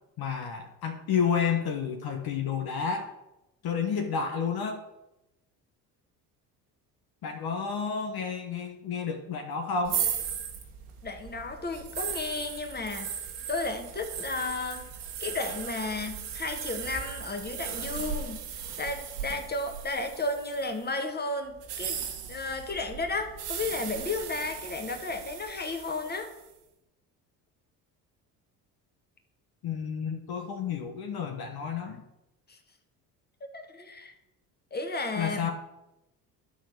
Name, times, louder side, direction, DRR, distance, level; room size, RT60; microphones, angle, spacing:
voice 1, 0.2-3.1 3.6-4.8 7.2-10.0 29.6-32.0 35.1-35.5, left 6 dB, 50° left, 4 dB, 1.3 m, -30 dB
sound 1, 9.8-20.8 21.6-26.4, right 8 dB, 80° right, 1.8 m, -37 dB
voice 2, 11.0-13.1 13.5-14.8 15.2-18.5 18.8-22.0 22.3-26.3 32.5-32.6 33.4-34.1 34.7-35.5, left 3 dB, 20° left, 5 dB, 1.8 m, -33 dB
11.5 x 4.1 x 6.6 m, 0.93 s
hypercardioid pair, 60°, 47 cm